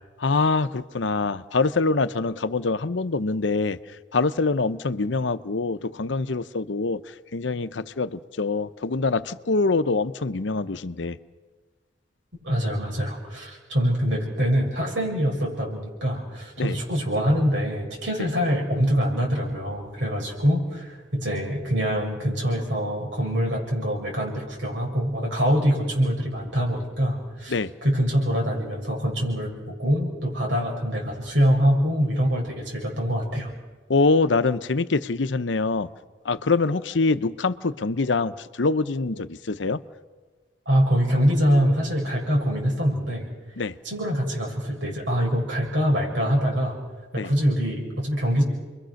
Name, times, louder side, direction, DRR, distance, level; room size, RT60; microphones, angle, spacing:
voice 1, 0.2-3.8 4.1-7.0 7.3-11.2 16.6-16.8 27.5-27.7 33.9-35.9 36.2-39.8 43.6-43.7 47.2-47.3, left 3 dB, 85° left, 0.8 m, -24 dB
voice 2, 12.4-27.5 27.8-33.5 40.7-43.2 43.8-46.8 47.1-48.4, equal, 85° right, 7.1 m, -24 dB
30.0 x 22.5 x 6.5 m
head